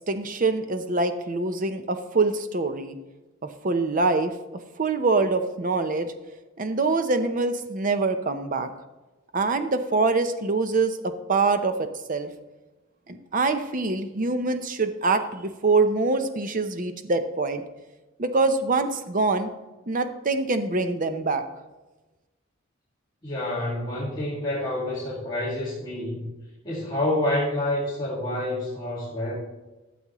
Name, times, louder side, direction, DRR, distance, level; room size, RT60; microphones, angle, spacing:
voice 1, 0.1-3.0 3.4-4.3 4.8-6.1 6.6-8.7 9.3-12.3 13.1-17.6 18.2-19.5 19.9-21.4, right 3 dB, 40° right, 8 dB, 0.7 m, -24 dB
voice 2, 23.2-26.3 26.6-29.3, left 1 dB, 20° left, -9 dB, 2.1 m, -28 dB
13.5 x 7.1 x 3.1 m, 1.1 s
head